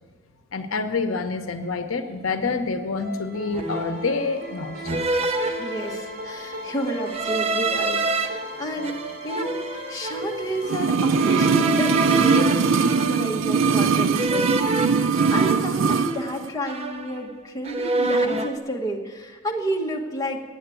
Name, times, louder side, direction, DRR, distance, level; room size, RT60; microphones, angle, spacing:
voice 1, 0.5-4.8, left 4 dB, 85° left, 8 dB, 0.8 m, -27 dB
sound 1, 2.4-2.7 3.5-4.1 4.9-6.3 7.1-8.3 8.8-10.4 11.2-13.5 14.1-16.4 16.6-17.4 17.6-18.6, right 3 dB, 30° right, 0.7 m, -27 dB
sound 2, 3.0-14.2, equal, 50° right, 2.8 m, -37 dB
voice 2, 5.6-9.6 9.9-15.0 15.3-20.4, right 1 dB, 15° left, -1 dB, 1.2 m, -30 dB
sound 3, 10.6-16.1 16.4-16.5, right 5 dB, 70° right, 0.4 m, -21 dB
9.6 x 7.8 x 9.0 m, 1.4 s
head